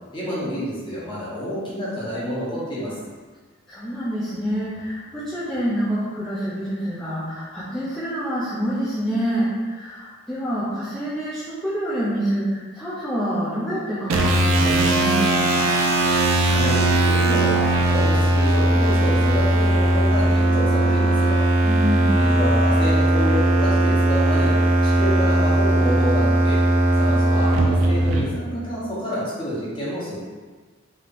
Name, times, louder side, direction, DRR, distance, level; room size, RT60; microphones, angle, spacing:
voice 1, 0.1-2.9 16.4-21.4 22.1-26.6 27.0-30.2, equal, 25° left, -9 dB, 1.0 m, -28 dB
voice 2, 3.7-15.7 21.6-22.2, equal, ahead, -12 dB, 0.5 m, -27 dB
sound 1, 14.1-28.2, right 1 dB, 80° right, 0.5 m, -18 dB
3.3 x 2.8 x 2.5 m, 1.4 s
head